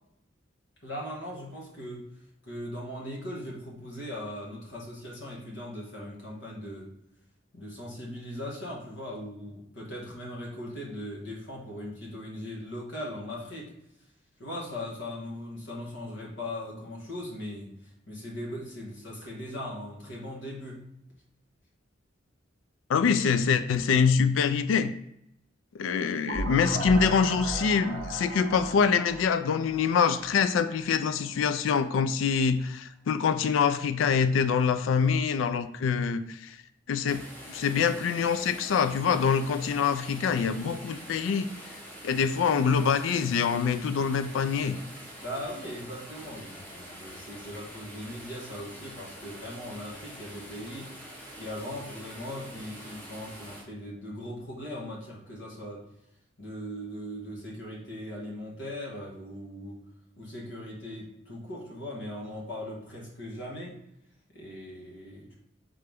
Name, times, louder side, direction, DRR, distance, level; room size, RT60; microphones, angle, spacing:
voice 1, 0.8-2.0 2.4-6.9 7.5-13.7 14.4-20.8 45.2-50.9 51.4-55.8 56.4-59.8 60.2-63.8 64.3-65.4, left 1 dB, 70° left, -3 dB, 1.3 m, -39 dB
voice 2, 22.9-24.9 25.7-36.6 36.9-41.5 42.0-44.8, left 6 dB, 90° left, 12 dB, 0.3 m, -25 dB
sound 1, 26.3-31.0, right 1 dB, 60° right, 0.7 m, -36 dB
sound 2, 37.1-53.6, equal, 10° left, 0.8 m, -45 dB
3.8 x 3.3 x 3.4 m, 0.80 s
head